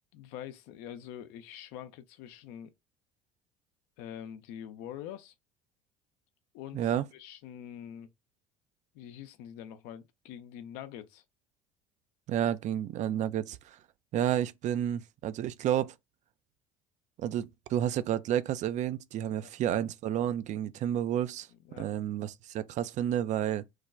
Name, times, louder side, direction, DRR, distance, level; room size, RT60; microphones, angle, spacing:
voice 1, 0.1-2.7 4.0-5.3 6.5-8.1 8.9-11.2 19.4-19.5 21.5-21.9, left 10 dB, 65° left, 0.5 m, -45 dB
voice 2, 6.7-7.1 12.3-13.8 14.1-15.9 17.2-21.5 21.8-23.6, right 10 dB, 45° right, 0.4 m, -30 dB
3.2 x 2.2 x 3.6 m
hypercardioid pair, 65°, 17 cm